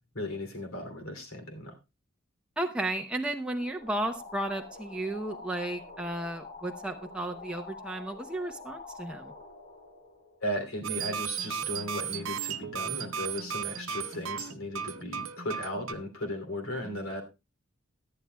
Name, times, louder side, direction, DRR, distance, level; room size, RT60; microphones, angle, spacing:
voice 1, 0.1-1.7 10.4-17.2, left 1 dB, 80° left, 5 dB, 2.8 m, -36 dB
voice 2, 2.6-9.3 16.8-17.0, right 1 dB, 5° right, 2 dB, 0.7 m, -34 dB
sound 1, 3.6-11.0, left 3 dB, 40° left, 3.8 m, -47 dB
sound 2, 10.8-15.9, right 8 dB, 65° right, 0.8 m, -35 dB
17.5 x 11.0 x 2.2 m, 0.26 s
head